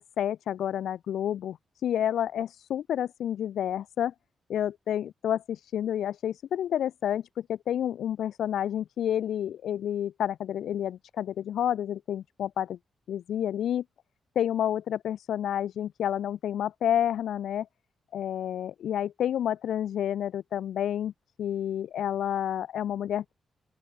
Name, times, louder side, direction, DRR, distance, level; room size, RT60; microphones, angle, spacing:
voice 1, 0.0-1.6 1.8-4.1 4.5-12.8 13.1-13.8 14.4-17.7 18.1-21.1 21.4-23.3, left 10 dB, 80° left, 0.8 m, -29 dB
open air
wide cardioid pair, 150°, 0 cm